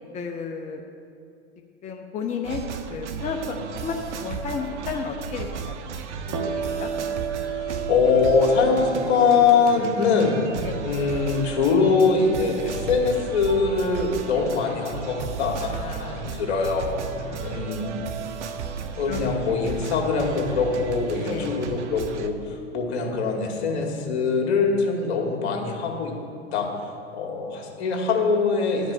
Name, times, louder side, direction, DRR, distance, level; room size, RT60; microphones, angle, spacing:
voice 1, 0.1-0.8 1.8-2.6 2.9-3.6 3.8-4.0 4.2-5.9 6.3-6.9 10.6-10.8 15.6-16.4 17.2-17.6 19.1-19.4 21.3-21.5, left 6 dB, 20° left, 2 dB, 0.7 m, -33 dB
sound 1, 2.4-22.3, right 6 dB, 75° right, 0.8 m, -34 dB
sound 2, 6.3-13.8, right 7 dB, 55° right, 1.8 m, -35 dB
voice 2, 7.4-10.4 10.8-16.9 17.4-17.9 19.0-26.1 26.5-26.7 27.1-28.9, left 5 dB, 65° left, 1 dB, 2.1 m, -23 dB
11.5 x 5.3 x 7.0 m, 2.5 s
hypercardioid pair, 105°, 35 cm